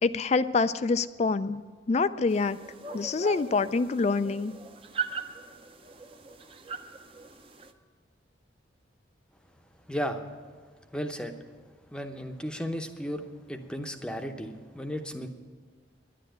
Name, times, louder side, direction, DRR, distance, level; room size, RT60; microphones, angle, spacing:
voice 1, 0.0-1.6 1.9-2.6 2.9-4.5, left 4 dB, 35° left, 14 dB, 0.3 m, -26 dB
sound 1, 2.3-7.7, right 5 dB, 30° right, 0.6 m, -40 dB
voice 2, 9.9-10.2 10.9-11.4 11.9-15.3, equal, 5° left, 5 dB, 0.7 m, -34 dB
11.0 x 10.0 x 9.1 m, 1.5 s
head